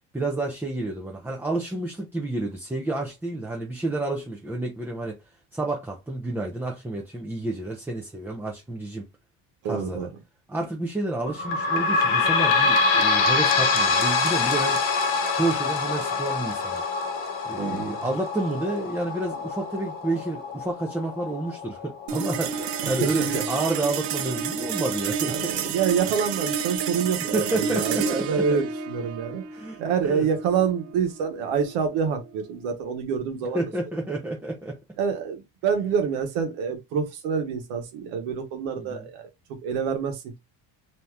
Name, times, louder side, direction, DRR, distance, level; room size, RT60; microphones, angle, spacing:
voice 1, 0.1-5.2 5.5-9.1 9.6-10.1 10.5-14.8 15.3-16.8 17.5-25.7 27.2-28.6 29.5-30.3 33.5-34.8 38.7-39.1, right 2 dB, 5° right, 0.4 m, -30 dB
voice 2, 9.6-10.1 17.6-18.0 22.8-23.4 25.2-29.4 29.8-33.6 35.0-40.4, right 6 dB, 80° right, 1.0 m, -27 dB
sound 1, 11.3-24.4 25.0-25.1 25.4-25.5 26.3-26.4, left 4 dB, 80° left, 0.9 m, -25 dB
sound 2, 22.1-32.7, right 6 dB, 60° right, 0.6 m, -30 dB
2.7 x 2.3 x 3.2 m
cardioid pair, 115°, 48 cm